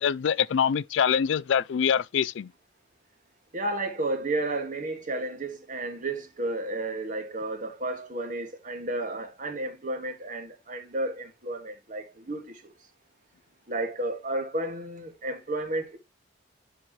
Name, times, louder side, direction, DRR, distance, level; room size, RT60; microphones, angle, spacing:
voice 1, 0.0-2.5, left 7 dB, 70° left, 0.4 m, -24 dB
voice 2, 3.5-12.7 13.7-16.0, right 2 dB, 45° right, 2.0 m, -32 dB
10.5 x 4.3 x 3.1 m
head